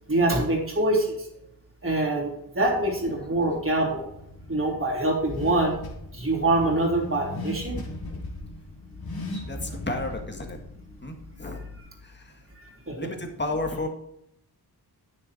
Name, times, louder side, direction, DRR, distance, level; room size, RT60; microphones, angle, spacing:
voice 1, 0.1-1.2 1.8-4.1 4.5-5.7 6.1-7.8 12.9-13.0, right 2 dB, 30° right, -2 dB, 3.2 m, -24 dB
Car / Accelerating revving vroom, 2.6-11.8, left 2 dB, 60° left, 2.3 m, -39 dB
voice 2, 9.9-10.6 11.0-11.6 13.0-13.9, left 2 dB, 25° left, 4 dB, 1.6 m, -31 dB
9.6 x 6.7 x 4.4 m, 0.76 s
wide cardioid pair, 95°, 41 cm